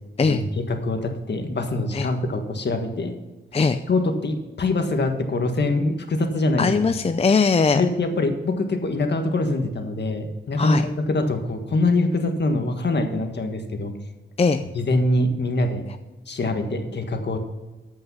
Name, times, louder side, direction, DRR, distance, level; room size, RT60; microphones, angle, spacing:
voice 1, 0.2-3.1 3.9-6.7 7.7-13.9 14.7-15.8 16.3-17.4, left 2 dB, 55° left, 5 dB, 1.6 m, -24 dB
voice 2, 6.6-7.8 10.6-10.8 14.4-14.6, left 4 dB, 30° left, 9 dB, 0.5 m, -20 dB
14.0 x 5.7 x 5.5 m, 1.1 s
cardioid pair, 80°, 21 cm